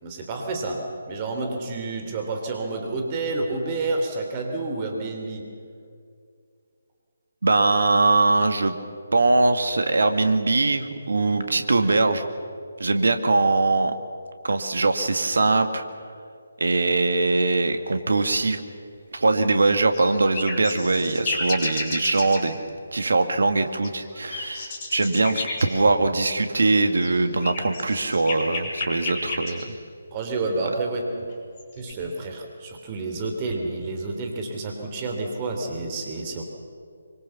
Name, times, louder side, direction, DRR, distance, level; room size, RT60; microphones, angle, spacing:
voice 1, 0.0-5.5 30.1-31.3 31.8-36.4, right 3 dB, 25° right, 3 dB, 3.3 m, -29 dB
voice 2, 7.4-8.7 9.1-12.3 12.8-13.9 14.4-15.8 16.6-18.6 19.1-22.6 22.9-29.6, right 3 dB, 60° right, 8 dB, 2.1 m, -21 dB
sound 1, 19.8-22.4 23.8-25.6 26.9-29.6 31.3-31.9, left 3 dB, 25° left, 6.2 m, -31 dB
25.0 x 24.5 x 7.2 m, 2.3 s
figure-of-eight pair, 145°, 0 cm